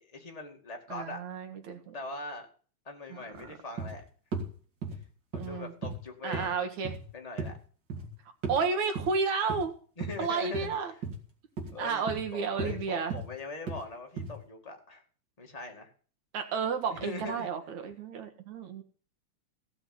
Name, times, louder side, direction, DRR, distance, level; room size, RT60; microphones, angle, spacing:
voice 1, 0.0-1.2 1.9-2.5 2.9-4.0 5.3-6.7 7.1-7.5 10.0-10.7 11.7-12.1 12.3-15.0 15.4-15.9 16.9-17.5, left 3 dB, 15° left, 2 dB, 1.9 m, -41 dB
voice 2, 0.9-1.9 5.4-5.7 6.2-6.9 8.5-9.7 10.2-10.9 11.8-13.1 16.3-18.8, right 5 dB, 70° right, 6 dB, 2.9 m, -31 dB
sound 1, 3.3-3.4 3.8-4.0 4.3-4.5 4.8-5.0 5.3-5.5 5.8-6.0 6.3-6.5 6.8-7.1 7.4-7.5 7.9-8.1 8.4-8.6 9.0-9.1 9.5-9.6 10.0-10.2 10.5-10.7 11.0-11.2 11.6-11.8 12.1-12.2 12.6-12.8 13.1-13.3 13.7-13.8 14.2-14.3, right 4 dB, 40° right, 2.8 m, -35 dB
16.0 x 6.0 x 7.8 m, 0.42 s
omnidirectional pair, 3.4 m